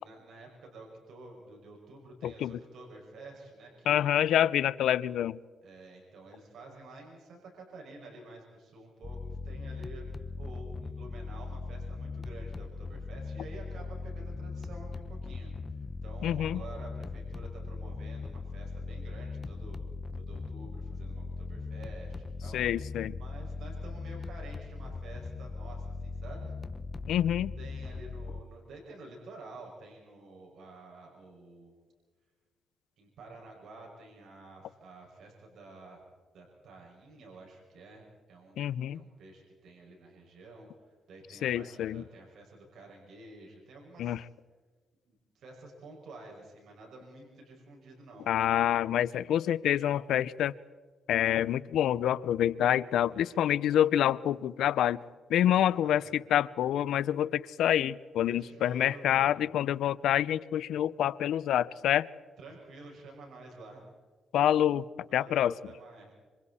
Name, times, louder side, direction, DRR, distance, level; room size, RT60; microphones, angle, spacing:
voice 1, 0.0-4.0 5.6-19.8 20.2-22.6 23.2-26.5 27.6-31.8 33.0-36.0 36.3-38.7 38.9-44.2 45.1-48.3 53.1-53.6 55.4-56.1 58.3-59.3 62.4-63.9 65.1-66.1, right 2 dB, 75° right, -1 dB, 6.0 m, -50 dB
voice 2, 2.2-2.6 3.9-5.4 16.2-16.6 22.5-23.1 27.1-27.5 38.6-39.0 41.4-42.0 44.0-44.2 48.3-50.5 51.1-55.0 55.3-62.1 64.3-64.9 65.1-65.5, left 11 dB, 85° left, 18 dB, 0.6 m, -27 dB
sound 1, 9.0-28.4, left 4 dB, 30° left, 0.9 m, -39 dB
27.0 x 26.0 x 4.3 m, 1.4 s
cardioid pair, 90°, 0 cm